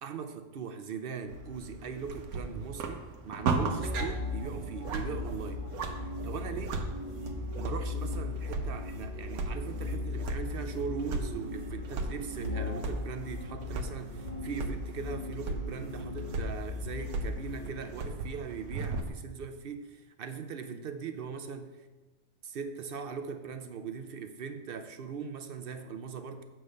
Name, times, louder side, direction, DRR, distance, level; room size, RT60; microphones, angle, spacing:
voice 1, 0.0-5.7 6.0-6.7 7.6-21.7 22.4-26.4, right 6 dB, 65° right, 8 dB, 0.6 m, -40 dB
sound 1, 1.3-19.1, right 3 dB, 85° right, 1.3 m, -37 dB
sound 2, 3.3-17.9, left 4 dB, 35° left, 1.2 m, -38 dB
8.3 x 4.5 x 6.2 m, 1.2 s
omnidirectional pair, 1.5 m